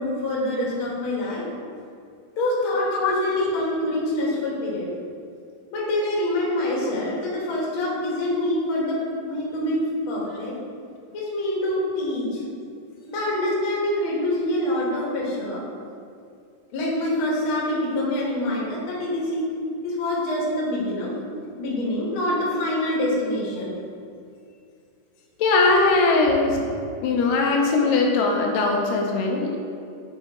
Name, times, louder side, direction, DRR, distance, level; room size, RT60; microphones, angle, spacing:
voice 1, 0.0-1.4 2.4-4.9 5.7-9.0 9.3-10.5 11.1-12.4 13.1-15.6 16.7-19.4 19.8-21.2 21.6-23.7 26.5-26.6, left 1 dB, 50° left, -5 dB, 1.6 m, -25 dB
voice 2, 25.4-26.6 27.0-29.6, left 3 dB, 80° left, 0 dB, 2.3 m, -20 dB
8.2 x 4.0 x 3.6 m, 2.4 s
omnidirectional pair, 3.9 m